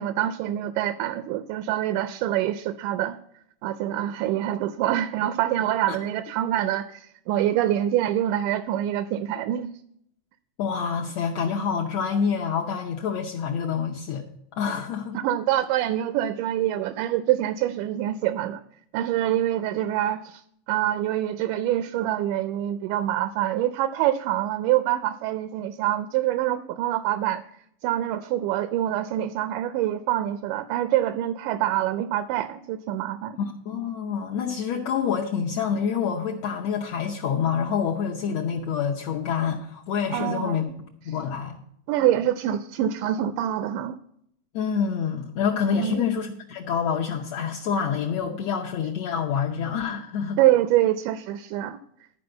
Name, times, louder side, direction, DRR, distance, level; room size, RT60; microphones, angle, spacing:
voice 1, 0.0-3.2 3.6-9.7 15.1-18.6 18.9-20.4 20.7-27.4 27.8-33.4 40.1-40.6 41.9-44.0 45.7-46.1 50.4-51.8, right 12 dB, 80° right, 12 dB, 2.0 m, -25 dB
voice 2, 10.6-14.2 14.5-15.2 33.4-40.7 41.0-41.6 44.5-50.4, left 7 dB, 70° left, -1 dB, 1.7 m, -27 dB
12.0 x 4.9 x 7.6 m, 0.72 s
omnidirectional pair, 3.7 m